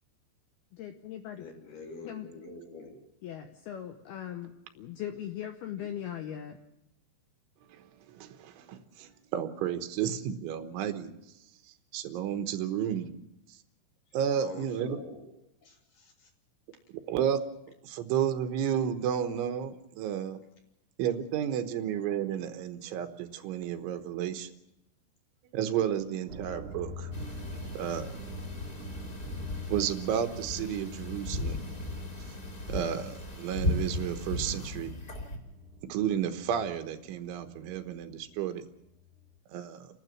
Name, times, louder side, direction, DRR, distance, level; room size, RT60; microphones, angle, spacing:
voice 1, 0.8-1.4 2.1-2.3 3.2-4.5 4.8-6.6, left 10 dB, 75° left, 5 dB, 2.5 m, -39 dB
voice 2, 1.4-3.0 14.2-15.3 15.6-16.3, left 3 dB, 45° left, 1 dB, 4.3 m, -46 dB
voice 3, 7.7-11.1 11.9-13.1 14.1-15.0 17.1-17.4 17.8-20.4 21.0-24.5 25.5-27.1 27.8-28.1 29.7-31.6 32.7-34.9 35.9-38.6 39.5-39.9, right 9 dB, 80° right, 8 dB, 3.5 m, -32 dB
sound 1, 26.3-38.4 38.8-39.4, left 1 dB, 60° right, 2.1 m, -45 dB
sound 2, 27.1-35.4, left 1 dB, 20° left, 3.4 m, -36 dB
30.0 x 12.5 x 7.4 m, 0.85 s
omnidirectional pair, 5.6 m